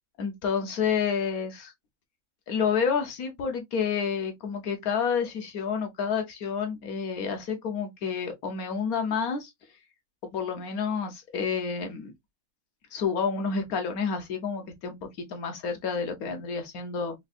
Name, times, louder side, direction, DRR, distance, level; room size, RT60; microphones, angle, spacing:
voice 1, 0.2-1.7 2.5-9.5 10.2-12.1 12.9-17.1, left 6 dB, 85° left, 1.4 m, -29 dB
4.7 x 2.6 x 2.3 m
omnidirectional pair, 1.5 m